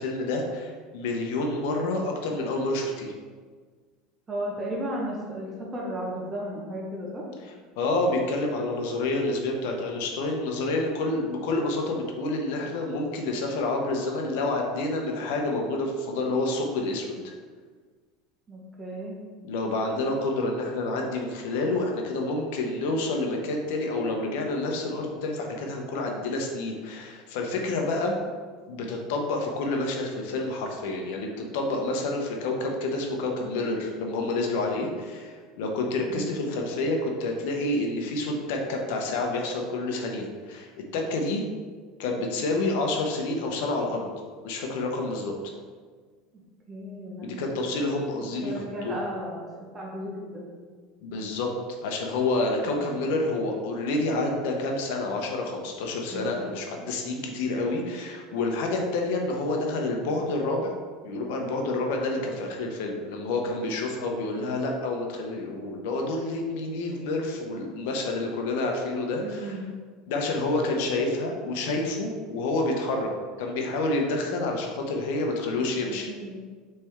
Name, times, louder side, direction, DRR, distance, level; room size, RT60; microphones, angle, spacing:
voice 1, 0.0-3.1 7.8-17.3 19.4-28.1 28.7-41.4 42.0-44.1 44.4-45.3 47.2-49.0 51.0-51.5 51.8-60.7 61.0-69.6 70.1-73.1 73.4-76.1, left 2 dB, 75° left, 1 dB, 0.7 m, -28 dB
voice 2, 4.3-7.2 18.5-19.1 36.1-36.4 46.7-47.6 48.2-50.5 52.6-53.0 56.1-56.5 69.2-69.7 75.9-76.4, right 1 dB, 25° right, -3 dB, 0.9 m, -35 dB
4.3 x 3.3 x 3.5 m, 1.5 s
supercardioid pair, 110°, 0 cm